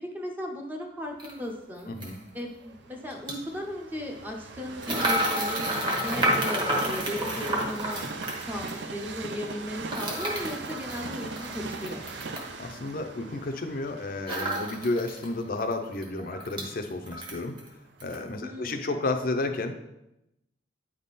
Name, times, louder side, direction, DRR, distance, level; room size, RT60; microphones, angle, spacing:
voice 1, 0.0-1.9 2.3-8.1 8.5-12.2 18.4-18.9, left 1 dB, 10° right, 1 dB, 0.7 m, -36 dB
sound 1, 1.2-1.3 2.0-2.2 3.1-3.3 4.8-8.8 9.9-12.5 14.3-15.3 15.6-15.7 16.0-16.7 17.1-17.7 18.0-18.2, right 1 dB, 25° right, 1.3 m, -30 dB
Train, 1.3-17.3 17.9-18.0, right 3 dB, 60° right, 0.5 m, -40 dB
voice 2, 1.9-2.2 12.6-17.6 18.0-19.7, left 2 dB, 45° left, 6 dB, 0.5 m, -31 dB
9.2 x 3.6 x 4.1 m, 0.89 s
head